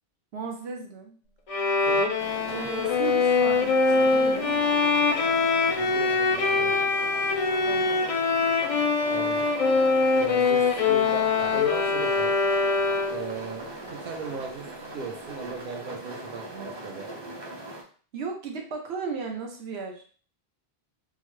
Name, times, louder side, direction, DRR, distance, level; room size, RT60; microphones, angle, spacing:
voice 1, 0.3-1.2 2.5-4.7 7.7-8.3 18.1-20.0, right 5 dB, 90° right, 2 dB, 1.0 m, -35 dB
Bowed string instrument, 1.5-13.3, left 4 dB, 55° left, 0.4 m, -23 dB
sound 1, 2.2-17.8, right 2 dB, 30° right, 0.5 m, -40 dB
voice 2, 5.7-6.7 9.1-9.4 10.2-12.4 13.1-13.6 13.9-17.1, right 4 dB, 60° right, 3 dB, 0.8 m, -37 dB
3.8 x 2.0 x 3.1 m, 0.42 s
omnidirectional pair, 1.1 m